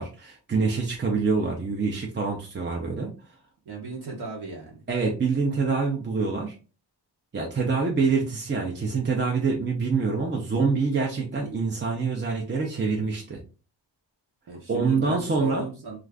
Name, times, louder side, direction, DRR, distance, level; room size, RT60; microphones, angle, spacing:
voice 1, 0.0-3.1 4.9-6.5 7.3-13.4 14.7-15.7, right 4 dB, 25° right, -1 dB, 0.5 m, -26 dB
voice 2, 3.6-4.8 14.5-16.0, right 3 dB, 65° right, -1 dB, 0.8 m, -36 dB
2.4 x 2.4 x 3.3 m, 0.34 s
wide cardioid pair, 145°, 43 cm